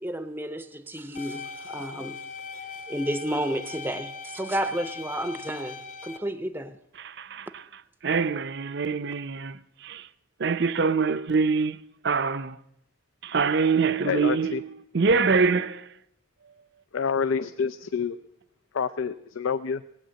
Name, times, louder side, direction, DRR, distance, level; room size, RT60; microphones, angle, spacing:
voice 1, 0.0-2.2 2.9-6.8, right 1 dB, 10° right, 0.6 m, -31 dB
sound 1, 1.1-6.2, left 5 dB, 35° left, 1.1 m, -40 dB
voice 2, 7.0-7.6 8.0-10.1 10.4-11.8 12.0-12.6 13.2-14.7 14.9-15.9, right 5 dB, 55° right, 0.6 m, -24 dB
voice 3, 14.0-14.6 16.9-18.2 18.7-19.8, left 6 dB, 85° left, 0.5 m, -27 dB
17.5 x 9.1 x 7.6 m
head